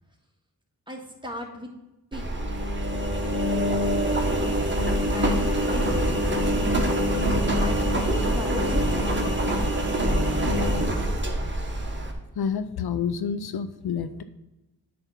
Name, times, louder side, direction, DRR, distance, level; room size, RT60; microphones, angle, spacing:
voice 1, 0.9-1.7 2.1-2.3 5.1-6.8 7.6-8.1 8.3-9.7 10.3-10.9, equal, 10° right, 0 dB, 1.8 m, -38 dB
Engine, 2.1-12.1, equal, 30° right, 1.3 m, -24 dB
sound 1, 5.8-11.5, equal, 60° left, 1.2 m, -41 dB
voice 2, 12.4-14.2, left 7 dB, 75° left, 11 dB, 0.5 m, -28 dB
9.1 x 3.5 x 5.8 m, 0.99 s
cardioid pair, 60°, 38 cm